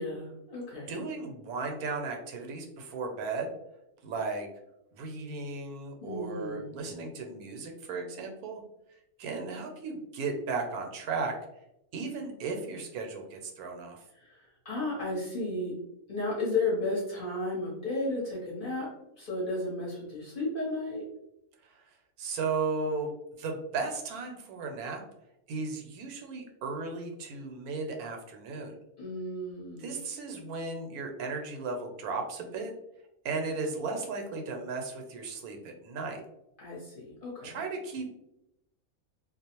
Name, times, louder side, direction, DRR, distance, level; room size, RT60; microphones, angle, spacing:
voice 1, 0.0-1.0 6.0-6.7 14.1-15.8 16.1-21.1 29.0-30.0 36.6-37.6, left 2 dB, 45° left, -5 dB, 0.8 m, -34 dB
voice 2, 0.9-3.5 4.0-4.5 4.9-8.6 9.2-11.3 11.9-14.0 21.6-23.1 23.4-25.0 25.5-28.7 29.8-32.7 33.2-36.2 37.4-38.1, right 4 dB, 85° right, 3 dB, 1.1 m, -35 dB
2.4 x 2.0 x 2.8 m, 0.84 s
omnidirectional pair, 1.5 m